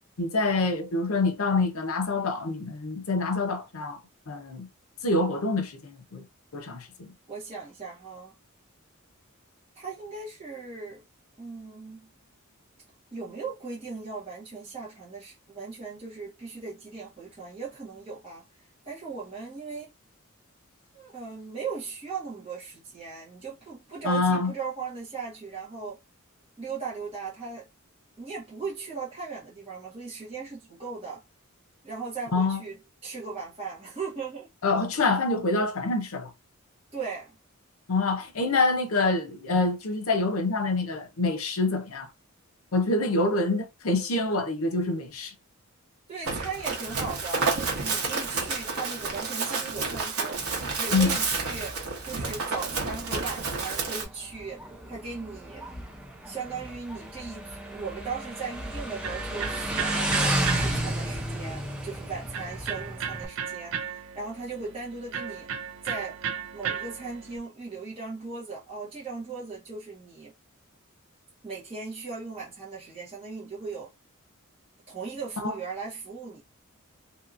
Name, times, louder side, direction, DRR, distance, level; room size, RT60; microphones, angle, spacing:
voice 1, 0.2-4.0 4.3-4.7 5.0-6.2 6.5-7.1 24.0-24.5 32.3-32.6 34.6-36.3 37.9-42.1 42.7-45.3 50.9-51.2 75.4-75.5, left 3 dB, 75° left, 0.6 m, -26 dB
voice 2, 7.3-8.3 9.7-11.0 11.4-12.1 13.1-18.4 18.8-19.9 20.9-26.0 26.6-27.7 28.2-31.2 31.8-34.5 36.9-37.4 46.1-51.8 52.0-55.7 56.2-65.5 65.8-66.2 66.5-70.3 71.4-73.9 74.9-76.4, right 4 dB, 25° right, 1.2 m, -38 dB
Run, 46.2-54.1, right 4 dB, 80° right, 1.0 m, -30 dB
Motorcycle, 50.3-63.3, right 1 dB, 5° right, 0.5 m, -33 dB
Electric guitar, 58.3-67.4, right 7 dB, 65° right, 0.5 m, -36 dB
2.8 x 2.7 x 2.5 m
head